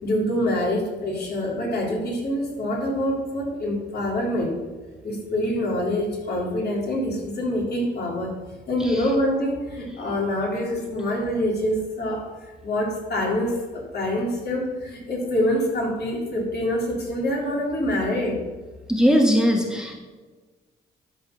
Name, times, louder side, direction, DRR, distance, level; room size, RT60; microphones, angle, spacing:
voice 1, 0.0-4.6 5.0-8.3 8.7-12.3 12.6-18.4, left 1 dB, 55° left, -2 dB, 3.6 m, -25 dB
voice 2, 18.9-19.9, equal, 5° right, 1 dB, 1.3 m, -20 dB
12.0 x 4.6 x 6.9 m, 1.3 s
cardioid pair, 90°, 20 cm